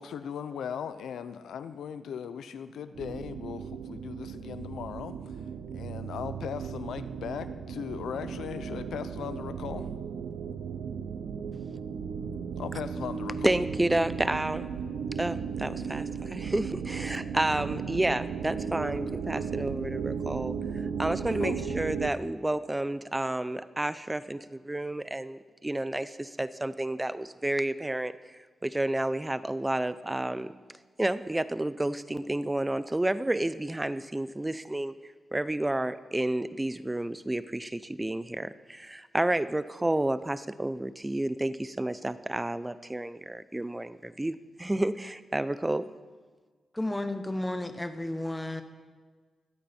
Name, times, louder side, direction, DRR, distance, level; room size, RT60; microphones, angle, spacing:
voice 1, 0.0-5.4 5.7-9.9 12.6-13.6 19.4-19.5 21.4-21.5, left 8 dB, 85° left, 12 dB, 0.6 m, -38 dB
sound 1, 3.0-22.1, right 6 dB, 85° right, 0.8 m, -35 dB
voice 2, 13.4-14.7 15.2-28.1 28.6-30.5 31.0-35.0 35.3-45.8, right 1 dB, 15° right, 14 dB, 0.6 m, -30 dB
voice 3, 46.7-48.6, left 1 dB, 15° left, 8 dB, 1.2 m, -32 dB
22.5 x 8.5 x 4.4 m, 1.4 s
cardioid pair, 80°, 0 cm